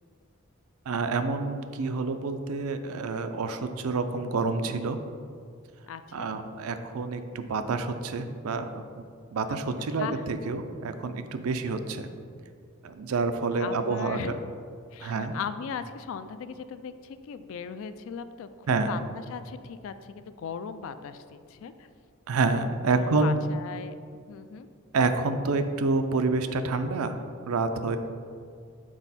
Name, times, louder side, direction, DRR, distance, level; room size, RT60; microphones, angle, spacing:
voice 1, 0.9-5.0 6.1-9.0 9.3-12.1 12.8-14.2 15.0-15.3 18.7-18.9 22.3-23.4 24.9-27.2 27.4-28.0, right 3 dB, 85° right, 8 dB, 0.5 m, -28 dB
voice 2, 5.9-6.3 9.5-9.6 10.0-10.2 13.6-14.3 14.9-21.9 22.9-23.9 24.3-24.7, left 6 dB, 65° left, 11 dB, 0.3 m, -38 dB
6.2 x 4.4 x 4.1 m, 2.2 s
head